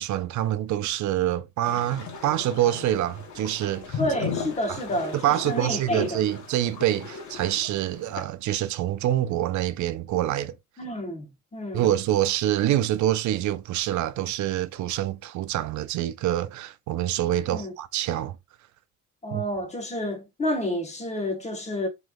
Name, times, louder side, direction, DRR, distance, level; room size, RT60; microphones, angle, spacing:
voice 1, 0.0-4.0 4.7-4.8 5.1-10.5 11.7-18.4 19.3-19.4, right 12 dB, 70° right, 0.5 m, -26 dB
sound 1, 1.6-8.2, left 6 dB, 70° left, 1.0 m, -37 dB
voice 2, 4.0-6.2 10.8-11.8 17.5-17.7 19.2-21.9, left 1 dB, 20° left, 1.1 m, -29 dB
3.2 x 3.1 x 2.2 m
cardioid pair, 90°, 30 cm